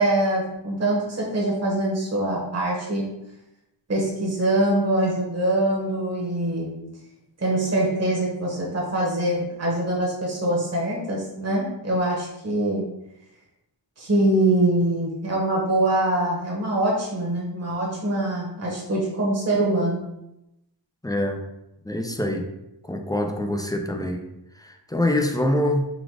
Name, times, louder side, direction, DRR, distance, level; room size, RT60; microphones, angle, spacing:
voice 1, 0.0-3.1 3.9-6.9 7.4-12.9 14.0-20.0, right 1 dB, 35° right, -3 dB, 1.1 m, -24 dB
voice 2, 21.0-21.4 21.8-22.5 22.8-24.3 24.6-25.9, left 1 dB, 10° left, 3 dB, 0.4 m, -25 dB
4.0 x 2.4 x 4.6 m, 0.87 s
wide cardioid pair, 95°, 44 cm